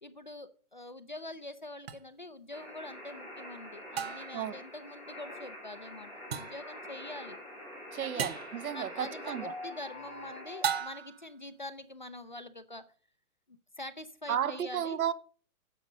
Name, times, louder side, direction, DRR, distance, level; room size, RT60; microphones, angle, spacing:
voice 1, 0.0-7.4 8.0-8.3 8.7-12.8 13.5-15.0, left 2 dB, 35° left, 0.4 m, -45 dB
sound 1, 1.9-2.0 4.0-4.5 6.3-6.7 8.2-8.6 10.6-11.3, right 8 dB, 45° right, 0.7 m, -35 dB
sound 2, 2.5-10.8, left 1 dB, 5° right, 3.3 m, -45 dB
voice 2, 7.9-9.5 14.3-15.1, right 9 dB, 75° right, 1.0 m, -33 dB
9.9 x 6.7 x 6.3 m
hypercardioid pair, 175°, 44 cm